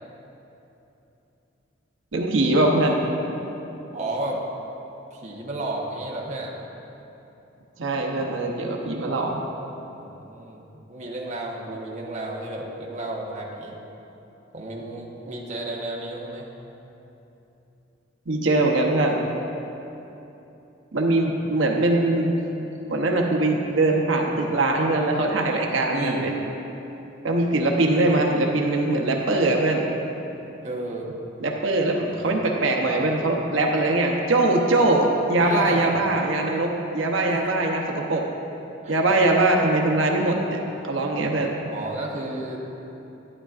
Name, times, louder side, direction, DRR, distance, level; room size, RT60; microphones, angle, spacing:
voice 1, 2.1-3.0 7.8-9.4 18.3-19.3 20.9-22.4 22.9-26.3 27.2-29.9 31.4-38.3 38.9-40.6 40.9-41.6, right 2 dB, 80° right, 0 dB, 0.8 m, -22 dB
voice 2, 3.9-4.4 5.1-6.7 9.9-13.8 14.5-16.5 25.9-26.2 30.6-31.1 32.1-32.4 35.4-36.0 37.3-37.4 38.8-39.0 41.7-42.6, right 2 dB, 35° right, -2 dB, 1.0 m, -32 dB
12.0 x 10.0 x 2.5 m, 3.0 s
head